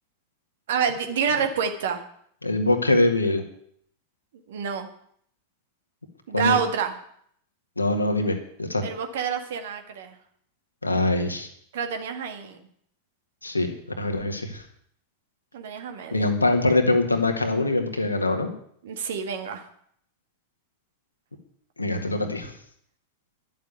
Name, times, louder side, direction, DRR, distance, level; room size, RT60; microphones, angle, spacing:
voice 1, 0.7-2.0 4.5-4.9 6.3-7.0 8.8-10.2 11.7-12.6 15.5-16.3 18.8-19.7, right 7 dB, 60° right, 7 dB, 1.8 m, -27 dB
voice 2, 2.4-3.4 6.3-6.5 7.8-8.8 10.8-11.5 13.4-14.6 16.1-18.5 21.8-22.5, left 2 dB, 80° left, 5 dB, 1.9 m, -23 dB
11.0 x 7.4 x 9.5 m, 0.66 s
figure-of-eight pair, 90°, 0 cm